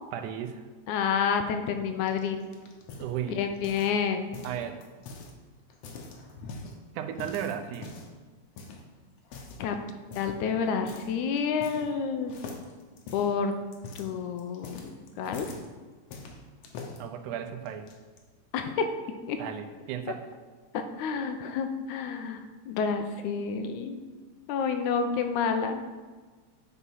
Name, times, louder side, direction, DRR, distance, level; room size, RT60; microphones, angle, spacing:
voice 1, 0.1-0.7 3.0-3.4 3.8-3.9 4.4-4.9 7.0-7.9 17.0-17.9 19.4-20.2, right 9 dB, 85° right, 7 dB, 2.2 m, -35 dB
voice 2, 0.9-2.4 3.3-4.3 9.6-9.8 10.2-12.3 13.1-13.5 14.0-15.5 18.5-18.9 19.3-19.4 20.7-24.0 24.5-25.8, left 6 dB, 85° left, 6 dB, 2.1 m, -29 dB
sound 1, 2.1-4.0 4.3-5.3 5.7-6.7 7.2-8.2 8.6-8.8 9.2-9.6 10.1-10.4 10.9-11.1 11.4-12.0 12.3-15.7 16.1-17.0 17.7-18.2, left 3 dB, 65° left, 1.8 m, -43 dB
9.2 x 4.2 x 5.4 m, 1.4 s
omnidirectional pair, 3.4 m